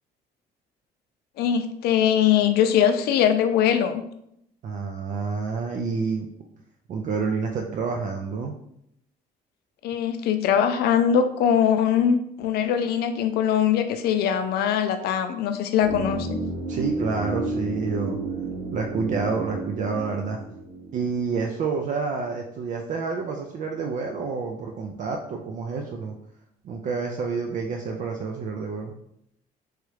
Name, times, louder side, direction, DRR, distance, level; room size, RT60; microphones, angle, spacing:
voice 1, 1.4-4.0 9.8-16.4, left 8 dB, 70° left, 9 dB, 0.4 m, -22 dB
voice 2, 4.6-6.3 6.9-8.6 16.7-18.2 18.7-20.4 20.9-26.2 26.6-29.0, right 5 dB, 50° right, 2 dB, 0.4 m, -28 dB
sound 1, 15.8-21.8 22.1-22.2, right 2 dB, 70° right, 0.9 m, -32 dB
3.1 x 2.4 x 3.1 m, 0.75 s
cardioid pair, 110°, 17 cm